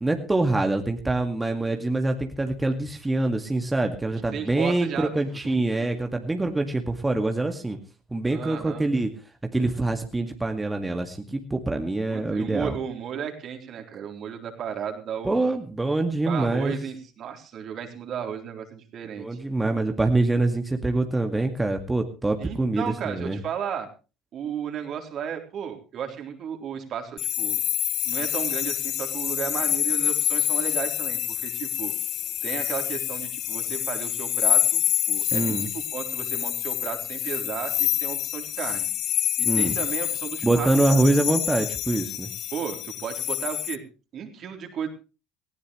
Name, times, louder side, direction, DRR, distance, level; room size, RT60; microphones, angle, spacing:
voice 1, 0.0-7.8 8.1-9.1 9.5-12.8 15.2-16.7 19.2-23.4 35.3-35.7 39.5-39.8 40.4-42.3, right 2 dB, 15° right, 4 dB, 2.1 m, -25 dB
voice 2, 4.3-5.4 5.8-5.9 8.3-8.9 12.1-15.5 16.3-19.4 22.4-23.9 24.3-27.6 28.1-31.9 32.4-38.9 39.4-41.1 42.5-43.8 44.1-44.9, right 8 dB, 50° right, 4 dB, 3.7 m, -34 dB
sound 1, 27.2-43.8, left 12 dB, 55° left, 0.7 m, -27 dB
19.0 x 16.5 x 3.2 m, 0.34 s
hypercardioid pair, 65°, 0 cm